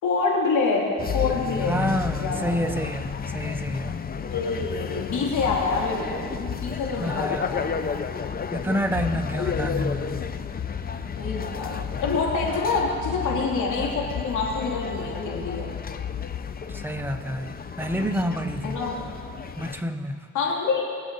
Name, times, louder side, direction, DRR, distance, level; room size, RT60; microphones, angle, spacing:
voice 1, 0.0-1.7 2.2-2.5 4.1-6.2 6.6-7.7 11.2-15.7 18.6-18.9 20.3-20.8, left 4 dB, 75° left, -3 dB, 2.9 m, -26 dB
sound 1, 1.0-19.8, left 7 dB, 30° left, 0.6 m, -32 dB
voice 2, 1.7-3.9 7.0-7.6 8.5-10.2 16.7-18.8 19.6-20.2, equal, 5° right, 6 dB, 0.9 m, -28 dB
22.0 x 7.7 x 4.1 m, 2.2 s
cardioid pair, 90°, 30 cm